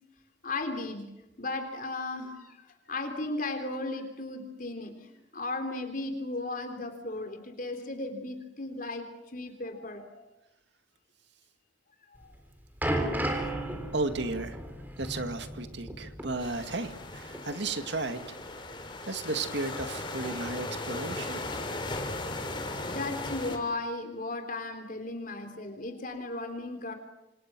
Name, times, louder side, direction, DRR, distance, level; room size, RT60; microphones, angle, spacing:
voice 1, 0.4-1.1 1.4-2.6 2.9-5.1 5.3-10.3 12.2-12.3 22.8-26.9, left 2 dB, 45° left, 6 dB, 3.6 m, -35 dB
sound 1, 12.2-17.1 17.3-17.5 18.3-18.4, right 1 dB, 10° right, 3.8 m, -34 dB
voice 2, 13.9-14.6 15.0-18.4 19.1-21.4, right 3 dB, 65° right, 8 dB, 2.2 m, -34 dB
sound 2, 16.4-23.6, left 2 dB, 25° left, 3.3 m, -37 dB
27.5 x 26.5 x 6.2 m, 0.93 s
head